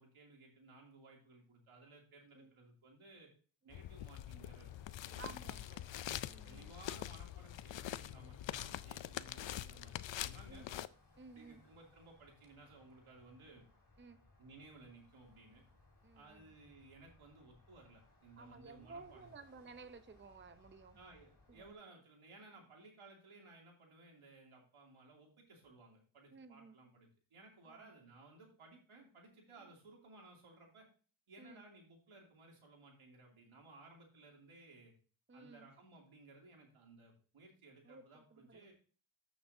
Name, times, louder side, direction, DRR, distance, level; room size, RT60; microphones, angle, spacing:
voice 1, 0.0-3.3 3.6-4.7 5.0-5.9 6.4-10.7 11.3-13.7 14.4-15.6 16.1-19.3 20.9-30.9 31.3-34.9 35.3-38.7, right 2 dB, 85° right, 0 dB, 2.8 m, -59 dB
sound 1, 3.7-10.9, left 12 dB, 65° left, 0.6 m, -44 dB
sound 2, 4.4-21.7, left 3 dB, 35° left, 3.5 m, -66 dB
voice 2, 5.2-5.8 6.3-6.7 10.5-10.7 11.2-11.6 14.0-14.2 16.0-16.4 18.4-21.0 21.6-21.7 26.3-26.7 27.6-27.9 29.6-29.7 31.4-31.6 35.3-35.7 37.8-38.6, right 4 dB, 25° right, 9 dB, 0.7 m, -55 dB
13.5 x 6.1 x 2.7 m, 0.40 s
cardioid pair, 60°, 48 cm